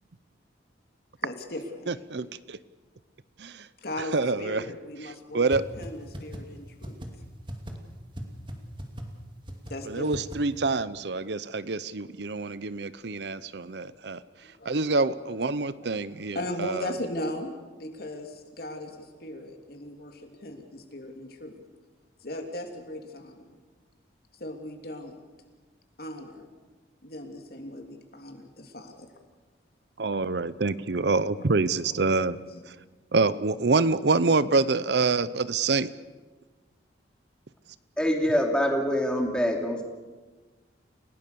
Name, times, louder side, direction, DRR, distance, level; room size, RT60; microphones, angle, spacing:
voice 1, 1.2-2.2 3.8-7.0 9.7-10.3 10.6-10.7 14.6-14.8 15.8-21.6 22.2-23.6 24.4-25.2 26.0-26.5 27.0-29.1 30.9-31.5 31.8-32.6, left 1 dB, 55° left, 4 dB, 3.1 m, -38 dB
voice 2, 1.9-2.6 3.4-3.7 4.1-4.6 5.0-5.7 9.8-14.2 14.7-16.9 30.0-32.4 33.1-35.9, right 3 dB, 65° right, 16 dB, 0.7 m, -26 dB
sound 1, 5.5-5.6 5.8-5.9 6.1-6.4 6.8-7.1 7.5-7.7 8.1-8.2 8.5-8.6 8.8-9.0 9.5-9.7 10.1-10.4, equal, 25° right, 2.6 m, -36 dB
voice 3, 38.0-39.8, equal, 5° left, 2 dB, 2.9 m, -25 dB
29.5 x 17.5 x 7.0 m, 1.3 s
head